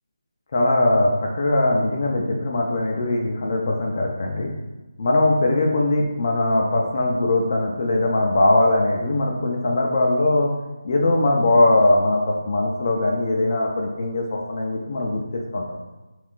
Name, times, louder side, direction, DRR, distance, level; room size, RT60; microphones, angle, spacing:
voice 1, 0.5-4.5 5.0-10.5 10.8-15.6, left 2 dB, 40° left, 0 dB, 0.4 m, -20 dB
2.4 x 2.4 x 3.6 m, 1.1 s
figure-of-eight pair, 165°, 3 cm